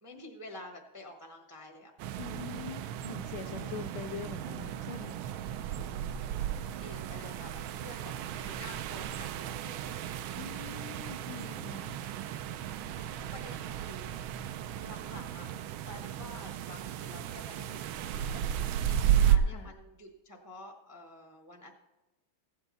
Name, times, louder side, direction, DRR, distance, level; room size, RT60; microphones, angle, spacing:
voice 1, 0.0-1.9 3.5-3.8 5.5-6.1 6.8-10.4 12.8-14.1 14.8-15.5 15.8-21.7, left 1 dB, 25° right, 2 dB, 0.4 m, -49 dB
sound 1, 2.0-19.4, right 10 dB, 80° right, 1.4 m, -34 dB
voice 2, 2.2-5.2 10.4-12.0 18.9-19.7, left 7 dB, 75° left, 6 dB, 1.0 m, -44 dB
15.5 x 8.1 x 4.0 m, 1.0 s
omnidirectional pair, 2.2 m